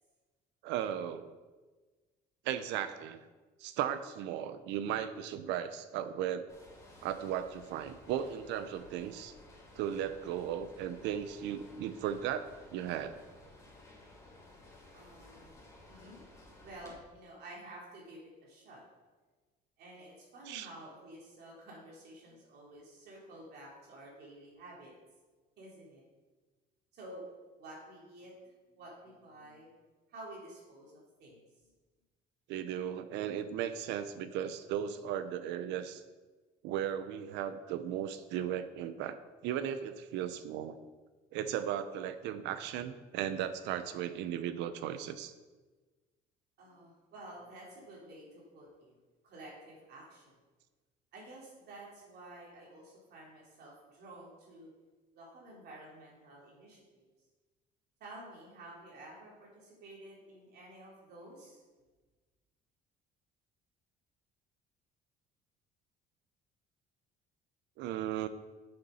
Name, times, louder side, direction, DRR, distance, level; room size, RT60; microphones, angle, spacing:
voice 1, 0.6-1.3 2.4-3.2 3.6-6.5 7.0-9.3 9.8-13.1 20.5-20.7 32.5-36.0 36.6-39.2 39.4-40.8 41.3-45.3 67.8-68.3, right 10 dB, 85° right, 11 dB, 0.7 m, -36 dB
sound 1, 6.5-16.9, left 2 dB, 20° left, 2.6 m, -56 dB
voice 2, 14.9-15.6 15.9-16.2 16.6-18.8 19.8-24.9 25.6-26.0 26.9-27.3 27.6-29.7 30.1-31.4 46.6-49.0 49.2-50.2 51.1-54.7 55.1-57.0 58.0-61.6, right 1 dB, 65° right, -3 dB, 2.9 m, -51 dB
7.0 x 6.8 x 5.5 m, 1.3 s
cardioid pair, 120°, 18 cm